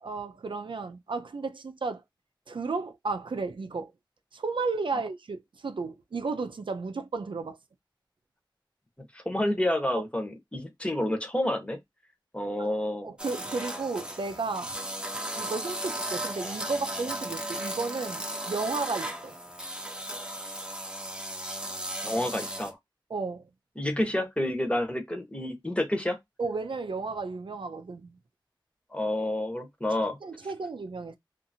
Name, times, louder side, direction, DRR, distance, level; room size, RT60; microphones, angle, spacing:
voice 1, 0.0-2.0 2.5-3.9 4.3-7.6 12.6-12.7 13.0-14.7 15.4-19.3 23.1-23.4 26.4-28.1 30.2-31.2, right 4 dB, 85° right, 0.4 m, -33 dB
voice 2, 9.1-11.8 12.3-13.1 22.0-22.8 23.8-26.2 28.9-30.2, left 1 dB, 15° left, 0.8 m, -29 dB
sound 1, 13.2-22.7, right 1 dB, 10° right, 0.7 m, -36 dB
2.7 x 2.5 x 2.6 m
wide cardioid pair, 60°, 8 cm